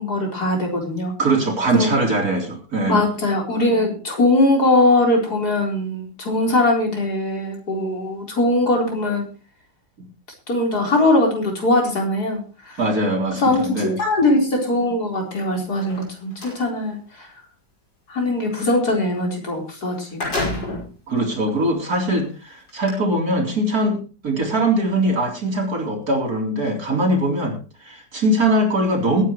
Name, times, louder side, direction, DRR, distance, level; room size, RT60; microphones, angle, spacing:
voice 1, 0.0-1.1 1.7-1.9 2.9-9.3 10.5-12.8 13.4-17.3 18.1-20.6, left 2 dB, 60° left, 0 dB, 4.9 m, -21 dB
voice 2, 1.2-3.0 10.0-10.1 12.8-14.0 21.1-24.0 24.2-27.6 27.8-29.2, right 1 dB, 55° right, 1 dB, 4.2 m, -21 dB
sound 1, 15.7-16.6 19.5-19.6 19.9-21.0 21.6-21.7 22.7-22.9, left 2 dB, 80° left, 6.2 m, -28 dB
21.5 x 9.9 x 3.1 m, 0.34 s
omnidirectional pair, 1.9 m